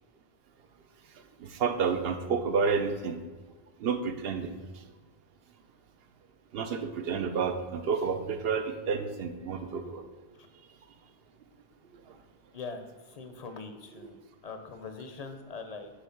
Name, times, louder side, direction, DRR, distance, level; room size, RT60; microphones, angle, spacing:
voice 1, 1.4-3.2 3.8-4.5 6.5-10.0, right 5 dB, 70° right, 8 dB, 0.9 m, -30 dB
voice 2, 12.5-15.9, left 4 dB, 45° left, 7 dB, 0.7 m, -42 dB
8.2 x 3.1 x 5.7 m, 1.3 s
omnidirectional pair, 1.1 m